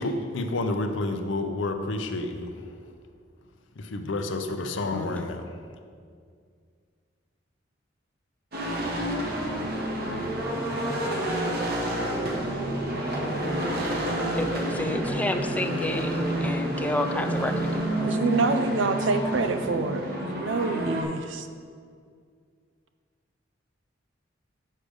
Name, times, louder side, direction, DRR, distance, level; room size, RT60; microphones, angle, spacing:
voice 1, 0.0-2.6 3.8-5.6, left 2 dB, 80° left, 7 dB, 0.6 m, -30 dB
voice 2, 4.9-5.2 14.3-18.1, left 1 dB, 10° left, 6 dB, 0.4 m, -31 dB
sound 1, 8.5-21.0, right 1 dB, 55° right, 1.2 m, -29 dB
voice 3, 18.0-21.5, right 3 dB, 80° right, 7 dB, 0.5 m, -27 dB
6.5 x 5.1 x 6.4 m, 2.1 s
head